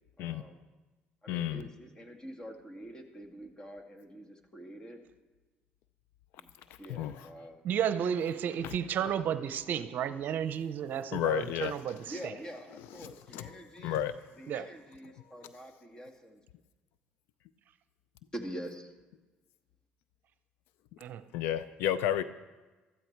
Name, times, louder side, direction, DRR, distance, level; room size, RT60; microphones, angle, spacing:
voice 1, 0.2-0.6 1.2-5.0 6.4-6.5 6.8-7.6 12.1-14.0 14.4-16.4 18.3-18.9, equal, 20° left, 4 dB, 2.1 m, -45 dB
voice 2, 1.3-1.6 6.9-7.1 8.6-8.7 11.1-11.8 13.3-13.4 13.8-14.1 21.3-22.2, left 10 dB, 75° left, 14 dB, 0.6 m, -31 dB
voice 3, 7.6-12.0 14.5-14.6 21.0-21.2, right 8 dB, 60° right, 12 dB, 0.7 m, -32 dB
14.0 x 13.5 x 4.6 m, 1.2 s
supercardioid pair, 85°, 4 cm